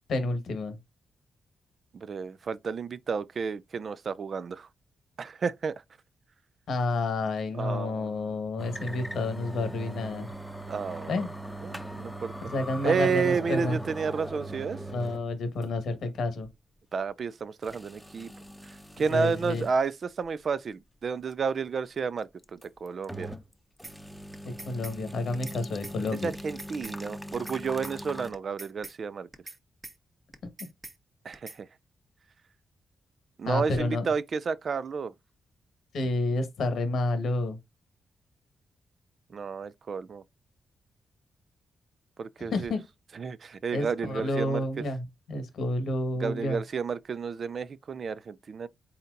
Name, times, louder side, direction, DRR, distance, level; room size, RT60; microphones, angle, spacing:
voice 1, 0.1-0.8 6.7-10.3 11.1-11.3 12.5-13.8 14.9-16.5 19.1-19.6 24.6-26.3 33.4-34.0 35.9-37.6 42.5-42.8 43.7-46.6, left 2 dB, 80° left, 1.2 m, -30 dB
voice 2, 1.9-4.7 5.2-5.7 7.5-8.3 10.7-11.3 11.6-12.5 12.8-14.8 16.9-18.3 18.6-23.3 26.2-29.3 31.2-31.7 33.4-35.1 39.3-40.2 42.2-42.7 43.1-44.6 46.2-48.7, right 5 dB, 60° right, 0.3 m, -31 dB
sound 1, 8.6-15.3 15.6-15.7 16.4-16.5 17.6-19.8 20.2-20.3 22.4-23.5 23.8-28.3, right 1 dB, 5° left, 0.7 m, -41 dB
sound 2, 23.8-24.0 24.3-25.0 25.3-25.6 25.8-26.0 26.3-27.0 27.3-27.6 27.8-28.0 28.3-29.0 29.3-29.6 29.8-30.0 30.3-31.0 31.3-31.6, right 2 dB, 35° right, 1.0 m, -43 dB
4.1 x 3.9 x 2.5 m
cardioid pair, 60°, 0 cm